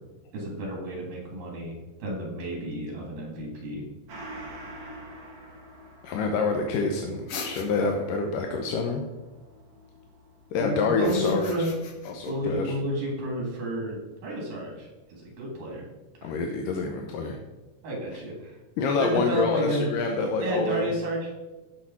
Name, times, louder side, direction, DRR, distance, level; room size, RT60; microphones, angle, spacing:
voice 1, 0.3-3.8 10.6-11.7 12.3-15.9 16.2-16.4 17.8-18.6 19.0-19.9 20.4-21.3, equal, 80° right, -1 dB, 4.7 m, -31 dB
Gong, 4.1-13.0 13.4-13.5, right 1 dB, 50° right, 2.9 m, -47 dB
voice 2, 6.0-9.0 10.5-11.5 12.1-12.7 16.2-17.4 18.8-20.9, left 4 dB, 80° left, 3 dB, 2.5 m, -27 dB
sound 1, 7.3-8.1 10.9-12.3, left 5 dB, 60° left, 1.7 m, -40 dB
14.5 x 6.6 x 4.2 m, 1.1 s
omnidirectional pair, 3.9 m